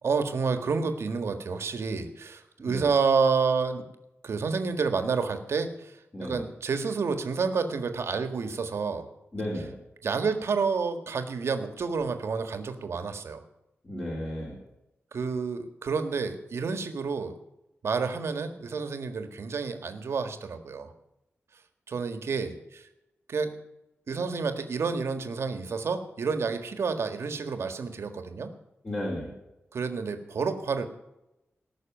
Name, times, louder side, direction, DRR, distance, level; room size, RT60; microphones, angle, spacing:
voice 1, 0.0-3.8 4.2-9.0 10.0-13.4 15.1-17.3 17.8-20.9 21.9-22.9 23.3-23.6 24.1-28.5 29.7-30.8, right 5 dB, 75° right, 7 dB, 1.7 m, -29 dB
voice 2, 6.1-6.4 9.3-9.8 13.8-14.6 28.8-29.3, left 1 dB, 25° left, -5 dB, 3.8 m, -34 dB
18.5 x 6.5 x 9.1 m, 0.89 s
wide cardioid pair, 165°, 5 cm